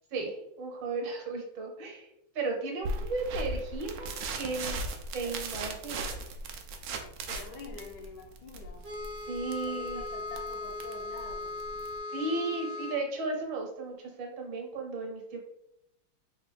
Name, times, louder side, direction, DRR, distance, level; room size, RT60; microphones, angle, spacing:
voice 1, 0.1-2.1 2.3-4.8 5.1-6.1 9.3-10.0 12.1-15.4, right 3 dB, 70° right, 2 dB, 1.5 m, -35 dB
sound 1, 2.8-12.0, right 2 dB, 85° right, 0.8 m, -38 dB
voice 2, 7.0-8.9 9.4-11.6, left 4 dB, 70° left, 1 dB, 1.1 m, -47 dB
sound 2, 8.8-13.0, left 3 dB, 15° right, 0.5 m, -38 dB
3.9 x 2.3 x 4.1 m, 0.82 s
omnidirectional pair, 2.2 m